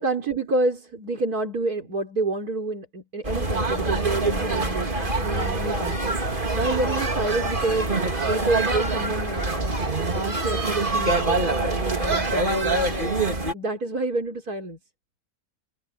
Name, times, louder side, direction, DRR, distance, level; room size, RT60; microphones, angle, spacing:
voice 1, 0.0-6.2 6.5-7.9 8.3-9.6 10.1-13.2 13.5-14.8, right 3 dB, 80° right, 4.4 m, -28 dB
sound 1, 3.2-13.5, right 2 dB, 35° right, 2.8 m, -25 dB
omnidirectional pair, 1.6 m